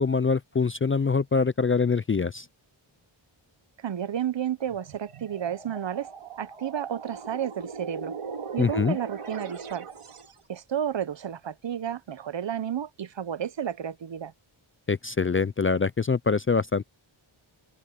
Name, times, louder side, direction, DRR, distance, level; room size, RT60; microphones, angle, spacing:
voice 1, 0.0-2.5 8.6-9.0 14.9-16.8, left 5 dB, 30° left, 0.4 m, -24 dB
voice 2, 3.8-6.1 6.4-8.1 8.5-9.9 10.5-14.3, right 9 dB, 60° right, 0.8 m, -31 dB
sound 1, 4.6-10.4, right 5 dB, 85° right, 2.8 m, -40 dB
open air
wide cardioid pair, 75°, 49 cm